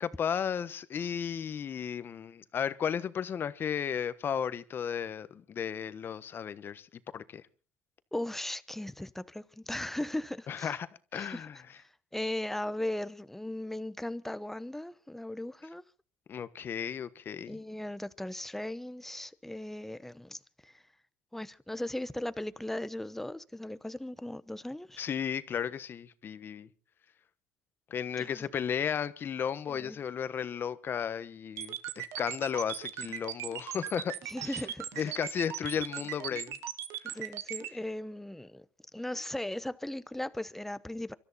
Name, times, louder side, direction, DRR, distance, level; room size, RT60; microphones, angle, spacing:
voice 1, 0.0-6.9 7.1-7.4 10.5-10.9 11.1-11.5 16.3-17.6 25.0-26.7 27.9-34.1 35.0-36.6 37.0-37.1, left 8 dB, 45° left, 1.2 m, -34 dB
voice 2, 8.1-10.8 11.1-15.8 17.5-20.8 21.3-25.0 28.2-28.5 29.7-30.0 34.2-35.2 37.0-38.6 38.9-41.1, left 1 dB, 5° left, 0.9 m, -38 dB
sound 1, 31.6-37.7, right 11 dB, 70° right, 1.6 m, -38 dB
24.5 x 13.5 x 4.2 m
supercardioid pair, 95°, 5 cm